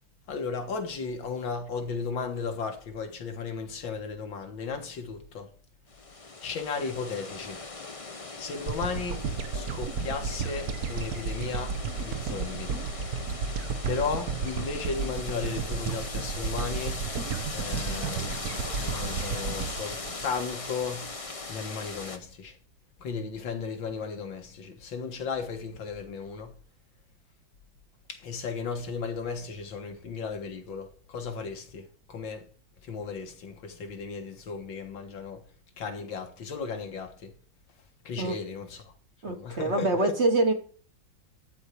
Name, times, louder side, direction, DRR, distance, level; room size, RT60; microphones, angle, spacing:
voice 1, 0.3-5.5 6.4-7.6 8.4-9.2 9.5-11.8 12.0-12.7 13.9-17.0 17.5-18.5 18.7-21.1 21.5-22.6 23.0-26.5 28.1-32.5 32.8-35.4 35.8-37.3 38.1-38.8 39.3-40.2, left 5 dB, 75° left, 2.2 m, -35 dB
sound 1, 5.9-22.2, left 3 dB, 30° left, 0.6 m, -39 dB
sound 2, 8.7-21.1, right 6 dB, 60° right, 1.2 m, -33 dB
voice 2, 39.2-40.5, right 2 dB, 40° right, 1.4 m, -25 dB
13.0 x 4.4 x 8.3 m
omnidirectional pair, 2.1 m